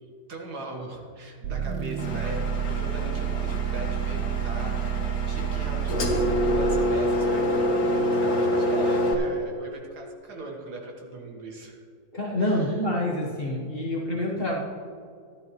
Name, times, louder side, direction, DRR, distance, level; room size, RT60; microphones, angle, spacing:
voice 1, 0.3-7.6 7.8-11.8 12.4-12.8, right 2 dB, 65° right, 0 dB, 2.1 m, -39 dB
sound 1, 1.4-7.1, right 11 dB, 85° right, 1.4 m, -29 dB
Engine, 2.0-9.1, left 1 dB, 55° left, 1.7 m, -26 dB
voice 2, 12.1-14.6, left 1 dB, 35° left, -3 dB, 1.3 m, -27 dB
13.5 x 12.0 x 3.1 m, 2.3 s
omnidirectional pair, 1.9 m